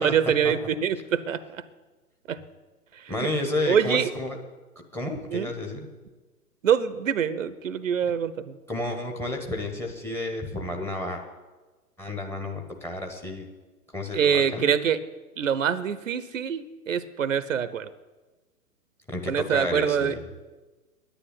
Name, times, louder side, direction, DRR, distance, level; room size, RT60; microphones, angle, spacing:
voice 1, 0.0-1.4 2.3-2.4 3.7-4.1 5.3-5.5 6.6-8.5 14.1-15.0 15.4-17.9 19.3-20.1, right 8 dB, 55° right, 15 dB, 0.9 m, -24 dB
voice 2, 3.1-4.4 4.8-5.9 8.7-11.2 12.0-13.5 13.9-14.7 19.1-20.2, left 2 dB, 5° left, 4 dB, 1.1 m, -31 dB
10.0 x 9.7 x 9.9 m, 1.2 s
figure-of-eight pair, 125°, 47 cm